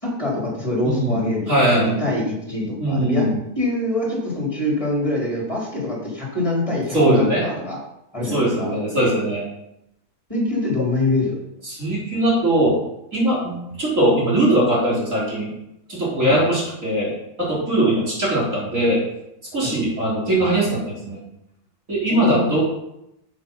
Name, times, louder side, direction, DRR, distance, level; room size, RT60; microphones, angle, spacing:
voice 1, 0.0-3.3 3.6-7.8 8.1-8.8 10.3-11.4 16.2-16.5 17.9-18.0 19.6-19.7 22.1-22.6, left 2 dB, 20° left, -4 dB, 4.2 m, -24 dB
voice 2, 0.8-1.2 1.5-1.9 2.8-3.4 6.9-7.4 8.3-9.4 11.7-12.8 13.1-15.5 15.9-19.0 19.5-21.2 21.9-22.6, right 1 dB, 55° right, -6 dB, 4.9 m, -20 dB
13.0 x 7.0 x 5.7 m, 0.84 s
omnidirectional pair, 1.6 m